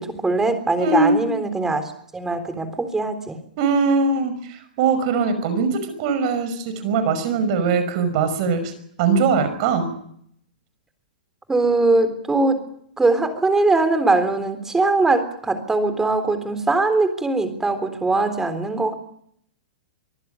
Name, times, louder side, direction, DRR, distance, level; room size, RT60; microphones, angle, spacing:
voice 1, 0.0-1.8 2.1-3.4 11.5-12.6 13.0-18.9, right 3 dB, 10° right, 9 dB, 3.7 m, -21 dB
voice 2, 0.8-1.2 3.6-8.7 9.0-9.9, right 4 dB, 50° right, 11 dB, 5.6 m, -21 dB
24.5 x 15.0 x 9.5 m, 0.68 s
hypercardioid pair, 125°, 5 cm